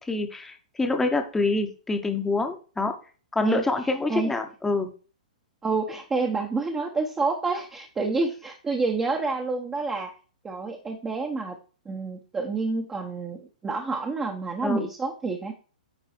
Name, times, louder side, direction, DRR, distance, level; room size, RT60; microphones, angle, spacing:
voice 1, 0.1-2.9 3.3-4.9 14.6-14.9, left 3 dB, 10° left, 6 dB, 1.0 m, -26 dB
voice 2, 3.4-4.3 5.6-10.1 10.4-11.6 11.8-15.5, right 3 dB, 15° right, 2 dB, 1.0 m, -28 dB
10.0 x 3.9 x 4.4 m, 0.37 s
hypercardioid pair, 125°, 4 cm